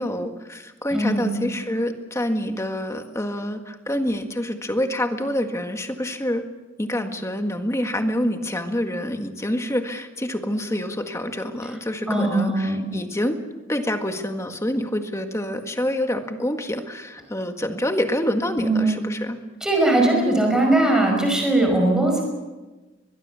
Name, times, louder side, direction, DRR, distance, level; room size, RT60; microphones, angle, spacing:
voice 1, 0.0-6.4 6.8-13.4 13.7-19.4, left 1 dB, 15° left, 6 dB, 1.7 m, -27 dB
voice 2, 0.9-1.3 12.1-12.8 18.6-19.0 19.6-22.2, right 2 dB, 5° right, 1 dB, 5.4 m, -20 dB
23.0 x 21.5 x 7.0 m, 1.2 s
head